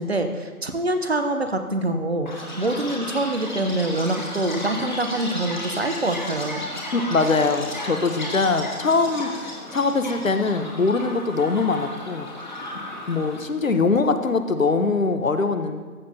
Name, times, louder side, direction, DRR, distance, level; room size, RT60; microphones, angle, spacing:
voice 1, 0.0-6.6, right 2 dB, 45° right, 7 dB, 0.8 m, -25 dB
Chirp tweet, 2.3-13.4, left 1 dB, 30° left, 1.4 m, -34 dB
voice 2, 6.9-12.3 12.7-15.8, left 4 dB, 60° left, 9 dB, 0.8 m, -22 dB
14.5 x 9.4 x 2.7 m, 1.4 s
figure-of-eight pair, 160°, 44 cm